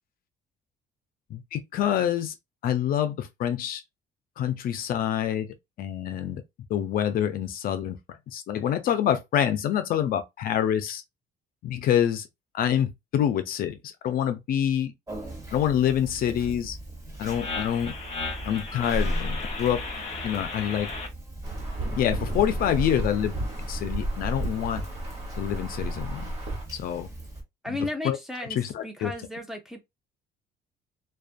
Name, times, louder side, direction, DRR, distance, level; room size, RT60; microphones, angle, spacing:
voice 1, 1.3-2.3 2.6-3.8 4.4-5.5 5.8-6.4 6.7-8.0 8.3-11.0 11.6-12.3 12.5-13.8 14.0-14.9 15.5-16.8 17.2-17.9 18.4-19.8 20.2-20.9 21.9-23.3 23.7-24.8 25.4-26.3 26.7-27.1 27.7-27.8 28.0-28.2 28.6-29.1, left 10 dB, 60° left, 0.5 m, -26 dB
Conversation, 15.1-27.4, right 1 dB, 20° right, 1.0 m, -38 dB
sound 1, 17.3-21.1, left 3 dB, 35° left, 1.0 m, -35 dB
Insect / Thunder / Rain, 21.4-26.6, right 1 dB, 40° right, 1.2 m, -32 dB
voice 2, 27.6-28.6 28.8-29.8, left 1 dB, ahead, 0.6 m, -34 dB
2.5 x 2.3 x 2.4 m
cardioid pair, 110°, 17 cm